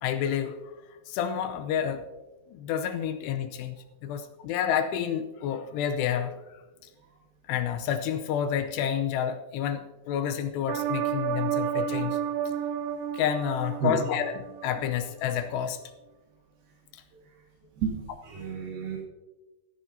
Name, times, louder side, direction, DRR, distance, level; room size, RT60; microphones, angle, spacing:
voice 1, 0.0-0.6 1.1-2.0 2.5-3.8 4.0-6.4 7.5-12.2 13.1-15.8 16.9-17.0, left 9 dB, 80° left, 8 dB, 2.7 m, -29 dB
sound 1, 10.7-14.9 15.3-15.4, right 9 dB, 80° right, 2.7 m, -31 dB
voice 2, 17.8-19.0, right 6 dB, 65° right, 0 dB, 3.2 m, -31 dB
15.5 x 15.0 x 2.7 m, 1.1 s
omnidirectional pair, 4.9 m